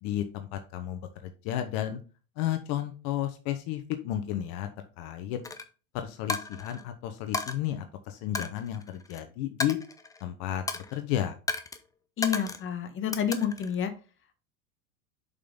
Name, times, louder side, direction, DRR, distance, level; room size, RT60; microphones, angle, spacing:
voice 1, 0.0-2.0 2.4-4.7 5.0-5.4 5.9-9.8 10.2-11.3, left 12 dB, 55° left, 8 dB, 1.1 m, -32 dB
Coin (dropping), 5.4-5.6 6.3-6.8 7.3-7.5 8.3-9.2 9.6-10.3 10.7-11.0 11.5-11.8 12.2-12.7 13.1-13.7, left 3 dB, 10° left, 0.7 m, -34 dB
voice 2, 12.2-13.9, left 8 dB, 30° left, 6 dB, 1.3 m, -29 dB
6.6 x 5.4 x 3.7 m, 0.34 s
hypercardioid pair, 105°, 42 cm